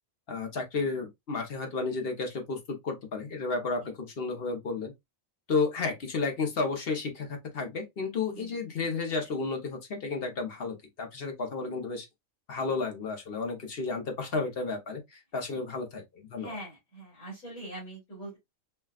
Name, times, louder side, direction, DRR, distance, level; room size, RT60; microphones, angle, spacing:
voice 1, 0.3-4.9 5.5-12.1 12.5-16.6, left 4 dB, 50° left, 1.0 m, -32 dB
voice 2, 8.3-8.6 16.4-18.4, right 1 dB, 75° left, 3.1 m, -42 dB
5.6 x 2.3 x 2.3 m
omnidirectional pair, 1.4 m